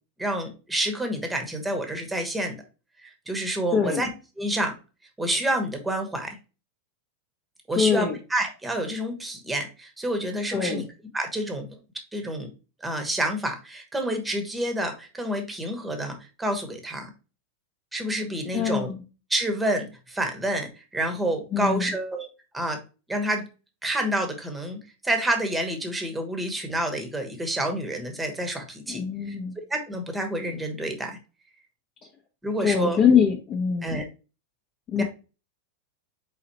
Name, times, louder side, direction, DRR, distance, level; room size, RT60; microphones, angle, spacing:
voice 1, 0.2-2.6 3.0-4.1 4.4-4.7 5.2-6.4 7.7-10.8 11.1-11.8 12.1-12.5 12.8-17.1 17.9-18.9 19.3-22.3 22.5-22.8 23.1-23.4 23.8-29.3 29.7-31.2 32.4-33.0 33.8-34.0 34.9-35.0, right 1 dB, 10° right, 4 dB, 1.1 m, -28 dB
voice 2, 3.7-4.0 7.7-8.2 10.5-10.8 18.5-19.0 21.5-21.9 28.9-29.6 32.6-34.0 34.9-35.0, left 7 dB, 35° left, 0 dB, 0.8 m, -23 dB
4.1 x 4.0 x 3.0 m, 0.32 s
supercardioid pair, 135°, 0 cm